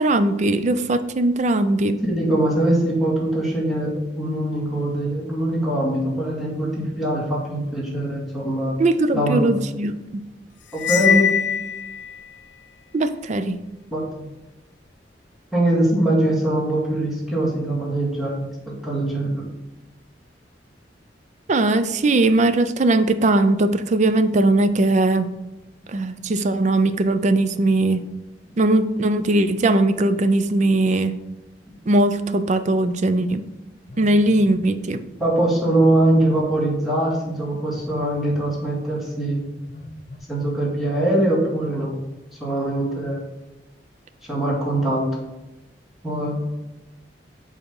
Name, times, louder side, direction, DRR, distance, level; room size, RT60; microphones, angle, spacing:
voice 1, 0.0-2.0 8.8-10.2 12.9-13.6 21.5-25.4 25.9-28.1 28.6-31.2 31.9-33.5 34.0-35.0, right 2 dB, 40° right, 11 dB, 0.4 m, -19 dB
voice 2, 2.1-8.8 9.1-9.5 10.7-11.3 13.9-14.0 15.5-19.5 35.2-39.4 40.3-42.0 42.4-43.2 44.2-45.1 46.0-46.4, right 1 dB, ahead, -6 dB, 2.1 m, -22 dB
Cymbal, 10.8-12.2, left 9 dB, 90° left, 0.4 m, -21 dB
Telephone, 33.9-34.6 35.8-36.5 37.8-38.5 39.7-40.2, left 1 dB, 60° left, 0.7 m, -39 dB
7.0 x 4.3 x 5.3 m, 1.0 s
head